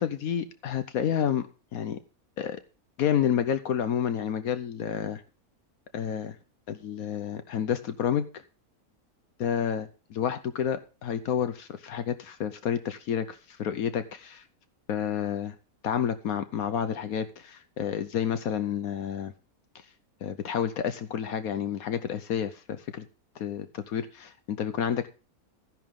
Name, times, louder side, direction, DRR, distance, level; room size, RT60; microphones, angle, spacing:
voice 1, 0.0-1.4 1.7-2.0 2.4-2.6 3.0-5.2 5.9-6.4 6.7-8.4 9.4-14.4 14.9-15.5 15.8-19.3 20.2-23.0 23.4-25.1, left 8 dB, 75° left, 11 dB, 1.2 m, -30 dB
14.5 x 10.5 x 3.7 m, 0.33 s
omnidirectional pair, 1.6 m